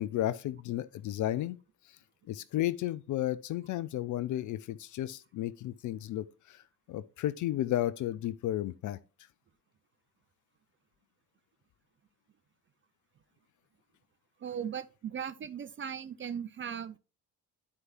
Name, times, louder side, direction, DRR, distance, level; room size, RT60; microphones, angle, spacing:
voice 1, 0.0-1.6 2.3-6.6 6.9-9.0, left 13 dB, 40° left, 0.5 m, -33 dB
voice 2, 14.4-17.0, right 8 dB, 25° right, 0.5 m, -38 dB
11.0 x 4.7 x 2.9 m
figure-of-eight pair, 45°, 48 cm